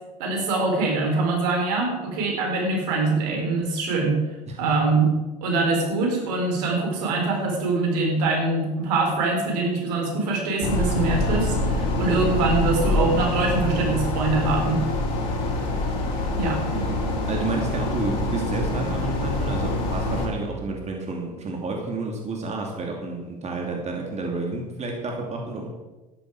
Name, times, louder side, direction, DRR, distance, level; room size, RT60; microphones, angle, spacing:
voice 1, 0.2-4.2 4.6-5.1 5.4-14.8 16.4-16.6, right 3 dB, 70° right, 1 dB, 4.0 m, -23 dB
sound 1, 10.6-20.3, left 2 dB, 65° left, 3.6 m, -25 dB
voice 2, 17.3-25.7, right 3 dB, 30° right, 0 dB, 2.7 m, -30 dB
12.5 x 10.5 x 4.9 m, 1.1 s
hypercardioid pair, 75°, 21 cm